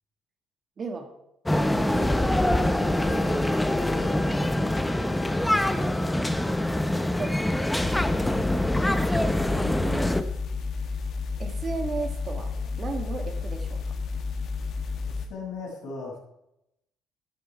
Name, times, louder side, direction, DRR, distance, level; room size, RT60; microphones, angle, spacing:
voice 1, 0.8-1.1 1.7-3.5 4.9-5.1 7.2-7.4 8.5-10.2 11.4-12.5 12.8-13.9, right 4 dB, 40° right, 4 dB, 2.2 m, -37 dB
sound 1, 1.5-10.2, left 1 dB, 5° left, 0.9 m, -24 dB
sound 2, 7.8-15.3, left 4 dB, 60° left, 2.0 m, -31 dB
voice 2, 15.0-16.2, left 4 dB, 80° left, -3 dB, 6.5 m, -37 dB
13.0 x 11.5 x 4.9 m, 0.85 s
cardioid pair, 110°, 0 cm